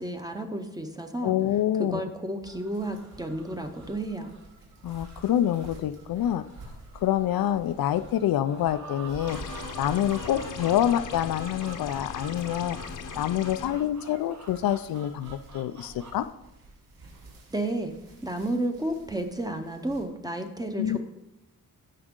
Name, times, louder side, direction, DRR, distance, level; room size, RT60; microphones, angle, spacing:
voice 1, 0.0-1.4 1.8-4.3 17.5-17.9 18.2-21.0, right 1 dB, 10° right, 5 dB, 0.8 m, -32 dB
voice 2, 1.2-2.0 4.8-6.4 6.9-9.4 9.8-12.8 13.2-16.3 20.8-21.0, left 11 dB, 80° left, 13 dB, 0.5 m, -26 dB
sound 1, 2.4-16.1, right 4 dB, 55° right, 1.3 m, -47 dB
sound 2, 2.4-11.8 12.1-20.0, right 2 dB, 70° right, 3.2 m, -50 dB
sound 3, 9.3-13.7, left 6 dB, 60° left, 0.9 m, -39 dB
16.0 x 6.0 x 3.7 m, 0.90 s
wide cardioid pair, 170°, 35 cm